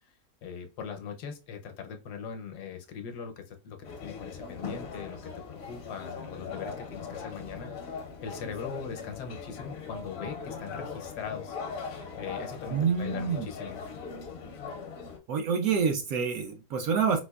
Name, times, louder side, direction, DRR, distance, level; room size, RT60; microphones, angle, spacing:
voice 1, 0.4-11.6 12.2-13.8, left 6 dB, 75° left, 5 dB, 1.2 m, -41 dB
sound 1, 3.8-15.2, left 5 dB, 55° left, 0.7 m, -40 dB
voice 2, 12.7-13.5 15.3-17.2, right 6 dB, 70° right, 3 dB, 0.9 m, -27 dB
4.3 x 2.4 x 2.3 m, 0.30 s
omnidirectional pair, 1.8 m